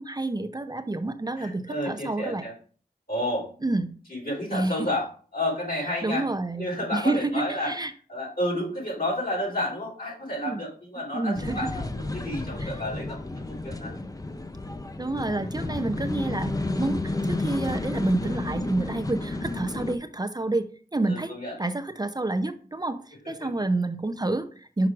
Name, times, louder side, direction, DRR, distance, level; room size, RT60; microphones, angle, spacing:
voice 1, 0.0-2.4 3.6-3.9 4.5-4.9 6.0-7.9 10.4-10.6 11.1-11.7 12.6-12.7 15.0-21.3 21.6-24.9, right 2 dB, 25° right, 7 dB, 0.6 m, -29 dB
voice 2, 1.4-2.5 3.1-3.5 4.1-6.2 6.6-7.7 8.1-13.9 21.0-21.5 23.2-23.5, left 1 dB, 65° left, -5 dB, 3.9 m, -31 dB
sound 1, 11.3-20.0, left 2 dB, 20° left, 0.7 m, -31 dB
6.0 x 4.8 x 4.7 m, 0.44 s
cardioid pair, 50°, 16 cm